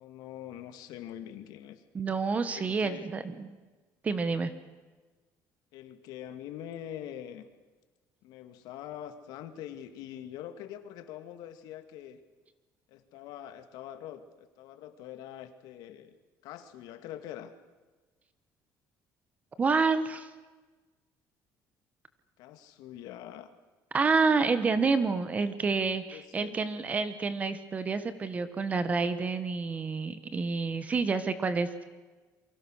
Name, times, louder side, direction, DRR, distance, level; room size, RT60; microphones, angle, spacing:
voice 1, 0.0-1.8 2.5-3.1 5.7-7.4 8.2-12.2 12.9-16.1 16.4-17.5 22.4-23.5 26.1-26.6, left 11 dB, 75° left, 9 dB, 2.3 m, -44 dB
voice 2, 1.9-3.5 4.0-4.5 19.6-20.3 23.9-31.8, right 4 dB, 20° right, 12 dB, 1.4 m, -28 dB
28.5 x 24.0 x 6.5 m, 1.3 s
cardioid pair, 175°, 7 cm